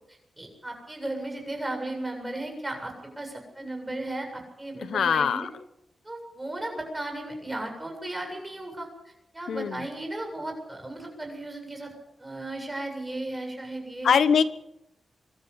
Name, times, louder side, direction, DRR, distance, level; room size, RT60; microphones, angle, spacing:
voice 1, 0.1-5.5 6.0-14.1, right 1 dB, 15° right, 3 dB, 7.9 m, -35 dB
voice 2, 4.8-5.5 9.5-9.9 14.0-14.4, left 7 dB, 90° left, 13 dB, 1.1 m, -22 dB
24.0 x 13.0 x 8.3 m, 0.82 s
wide cardioid pair, 105°, 0 cm